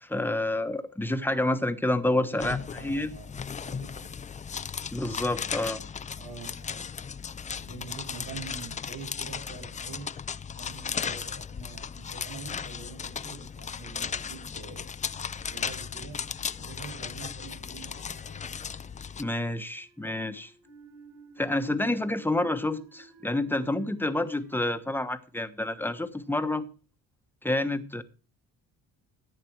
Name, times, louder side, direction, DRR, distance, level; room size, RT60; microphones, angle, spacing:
voice 1, 0.0-3.1 4.9-5.8 19.2-20.5 21.4-26.7 27.4-28.0, left 1 dB, 5° left, 1.2 m, -28 dB
voice 2, 2.1-4.1 6.1-10.1 10.5-14.9 15.3-16.2 16.6-18.1, right 5 dB, 60° right, 7.8 m, -45 dB
sound 1, 2.4-19.2, left 6 dB, 25° left, 0.5 m, -36 dB
sound 2, 16.6-25.8, right 4 dB, 90° right, 6.3 m, -55 dB
14.5 x 8.5 x 4.6 m
cardioid pair, 115°, 32 cm